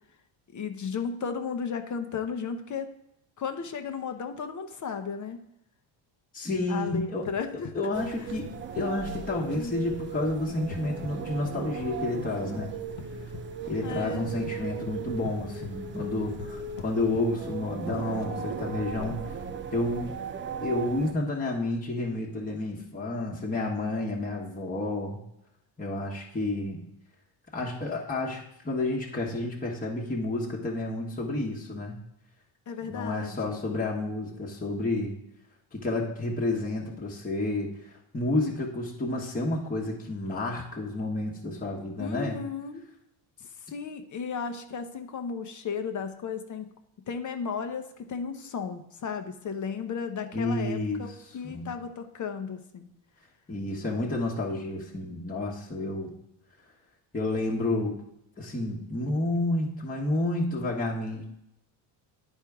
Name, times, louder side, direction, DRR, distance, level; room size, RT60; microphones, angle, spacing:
voice 1, 0.5-2.9 3.4-5.4 6.7-7.7 8.2-8.4 9.5-9.8 13.8-14.3 32.7-33.6 42.0-42.8 43.4-46.7 47.1-52.9 55.0-55.2, left 6 dB, 40° left, 7 dB, 0.8 m, -35 dB
voice 2, 6.3-7.3 7.7-8.5 8.7-12.8 13.7-19.4 19.7-20.1 20.6-25.2 25.8-26.8 27.5-32.0 32.9-35.2 35.7-42.4 50.3-51.0 51.4-51.7 53.5-56.1 57.1-58.0 58.4-61.2, left 2 dB, 15° left, -2 dB, 1.1 m, -30 dB
sound 1, 6.5-19.5, left 6 dB, 70° left, 0.9 m, -44 dB
sound 2, 7.9-21.1, right 6 dB, 25° right, 0.4 m, -37 dB
10.5 x 4.4 x 3.5 m, 0.81 s
cardioid pair, 110°, 48 cm